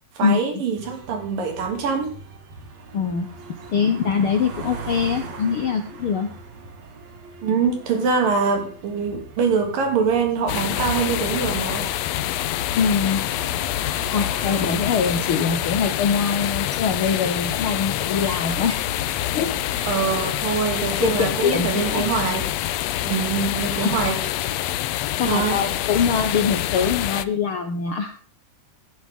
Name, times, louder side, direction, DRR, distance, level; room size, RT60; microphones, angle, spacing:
voice 1, 0.2-2.2 7.4-11.9 19.9-22.5 23.0-24.2 25.2-25.6, right 5 dB, 85° right, 4 dB, 4.3 m, -24 dB
sound 1, 0.7-20.3, right 4 dB, 55° right, 3.0 m, -41 dB
voice 2, 2.9-3.3 3.7-6.3 12.7-13.2 14.1-18.8 19.3-19.9 21.0-22.1 23.8-23.9 25.2-28.1, left 6 dB, 70° left, 7 dB, 1.3 m, -23 dB
sound 2, 10.5-27.3, left 13 dB, 90° left, 1.5 m, -26 dB
13.5 x 11.0 x 3.6 m, 0.43 s
omnidirectional pair, 3.8 m